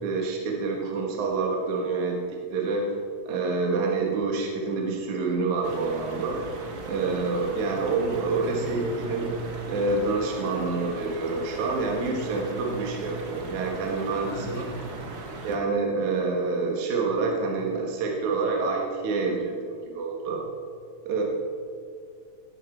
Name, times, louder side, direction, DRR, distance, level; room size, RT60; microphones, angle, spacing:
voice 1, 0.0-3.0 3.3-6.4 6.9-9.4 9.7-14.7 15.4-20.4 21.0-21.2, right 3 dB, 65° right, 0 dB, 2.7 m, -27 dB
sound 1, 5.6-15.6, right 3 dB, 50° right, 1.2 m, -38 dB
voice 2, 8.4-8.8 14.2-15.2, left 1 dB, 70° left, -4 dB, 4.8 m, -39 dB
17.0 x 12.5 x 4.4 m, 2.3 s
omnidirectional pair, 3.8 m